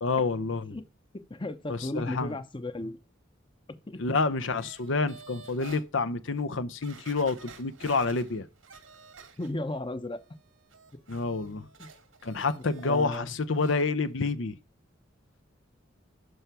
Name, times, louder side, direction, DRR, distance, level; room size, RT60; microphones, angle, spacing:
voice 1, 0.0-0.8 1.7-2.4 4.0-8.5 11.1-11.7 12.2-14.6, left 3 dB, 70° left, 0.7 m, -28 dB
voice 2, 1.3-3.0 3.9-4.0 9.4-10.2 11.8-11.9 12.8-13.3, left 1 dB, 25° left, 0.8 m, -34 dB
sound 1, 4.6-5.8 6.4-6.5 6.8-9.8 10.1-13.2 13.5-13.8 14.2-14.3, right 5 dB, 85° right, 2.2 m, -51 dB
12.0 x 4.6 x 6.8 m
head